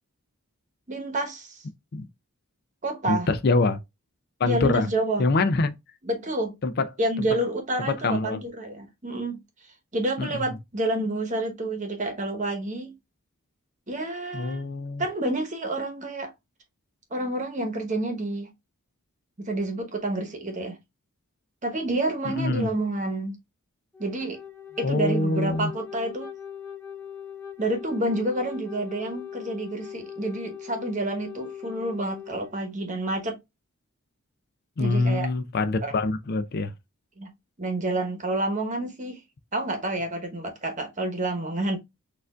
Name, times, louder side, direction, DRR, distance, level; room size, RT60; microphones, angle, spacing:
voice 1, 0.9-1.6 2.8-3.3 4.4-5.3 6.0-6.6 7.0-9.4 9.9-12.9 13.9-14.6 15.0-16.3 17.1-18.5 19.4-20.8 21.6-23.4 24.0-24.4 24.8-26.3 27.6-33.4 34.8-35.3 35.8-35.9 37.2-37.3 37.6-39.2 39.5-41.8, right 2 dB, 35° right, 1.0 m, -29 dB
voice 2, 3.1-3.8 4.4-4.9 5.2-5.7 6.6-6.9 7.2-7.3 7.8-8.4 10.2-10.4 14.3-15.0 22.3-22.7 24.8-25.7 34.8-36.7, left 3 dB, 45° left, 0.4 m, -25 dB
Wind instrument woodwind instrument, 23.9-32.6, left 8 dB, 10° left, 1.5 m, -40 dB
6.5 x 2.5 x 2.3 m
head